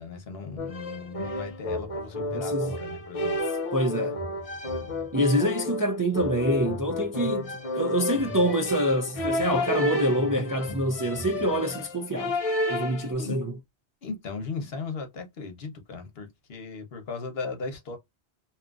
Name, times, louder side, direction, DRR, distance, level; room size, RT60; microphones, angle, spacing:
voice 1, 0.0-3.4 4.8-5.4 13.2-13.4 14.0-18.0, left 4 dB, 75° left, 1.1 m, -37 dB
sound 1, 0.6-13.1, left 1 dB, 40° left, 0.7 m, -31 dB
voice 2, 2.3-2.7 3.7-4.2 5.1-12.4 12.7-13.5, equal, 35° right, 0.3 m, -26 dB
2.7 x 2.4 x 2.3 m
omnidirectional pair, 1.0 m